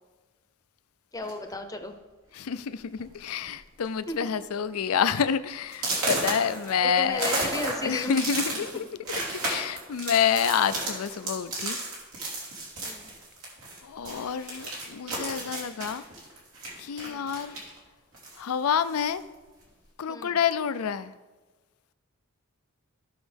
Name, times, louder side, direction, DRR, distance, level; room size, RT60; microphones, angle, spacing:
voice 1, 1.1-1.9 4.1-4.3 6.8-8.2 8.7-8.9 12.8-13.1 17.0-17.3 20.1-20.4, left 1 dB, 15° left, 6 dB, 0.7 m, -35 dB
sound 1, 1.2-1.5 2.3-2.4 2.8-3.1 3.4-3.9 4.3-4.4 4.9-5.0 5.7-13.8 14.0-17.8 18.1-19.2, right 2 dB, 90° right, 3.1 m, -33 dB
voice 2, 2.3-7.6 7.8-8.9 9.3-11.8 13.8-16.0 16.8-17.6 18.4-19.2 20.0-21.1, left 7 dB, 85° left, 14 dB, 0.5 m, -28 dB
16.0 x 6.2 x 3.5 m, 1.3 s
head